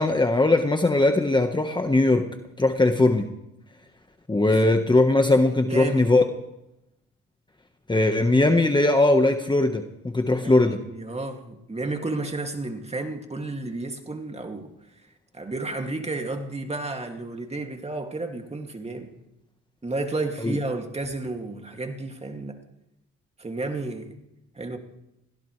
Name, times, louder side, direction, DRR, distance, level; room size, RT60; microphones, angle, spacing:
voice 1, 0.0-2.3 2.6-3.3 4.3-6.2 7.9-10.8 20.4-20.6, left 2 dB, 15° left, 5 dB, 1.3 m, -20 dB
voice 2, 4.5-4.8 5.6-6.1 10.4-14.8 15.3-19.1 19.8-22.6 23.4-24.1 24.5-24.8, right 2 dB, 20° right, 4 dB, 2.5 m, -32 dB
23.5 x 17.0 x 3.3 m, 0.86 s
cardioid pair, 90°, 30 cm